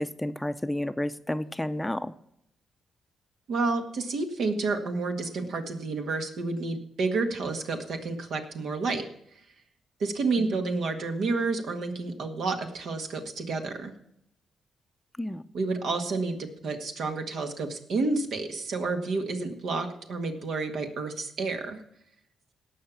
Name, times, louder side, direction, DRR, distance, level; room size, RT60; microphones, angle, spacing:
voice 1, 0.0-2.1 10.4-10.6 15.2-15.4, left 1 dB, 5° left, 11 dB, 0.6 m, -31 dB
voice 2, 3.5-9.0 10.0-13.9 15.5-21.8, right 3 dB, 75° right, 5 dB, 1.8 m, -30 dB
17.5 x 5.8 x 7.2 m, 0.76 s
cardioid pair, 75°, 0 cm